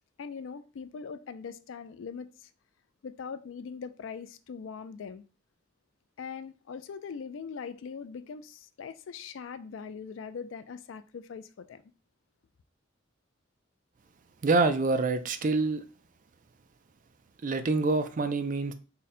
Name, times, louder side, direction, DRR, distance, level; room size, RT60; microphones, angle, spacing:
voice 1, 0.2-2.5 3.0-5.2 6.2-11.8, left 6 dB, 75° left, 0.4 m, -41 dB
voice 2, 14.4-15.8 17.4-18.7, right 3 dB, 45° right, 0.4 m, -26 dB
3.7 x 2.1 x 4.2 m
head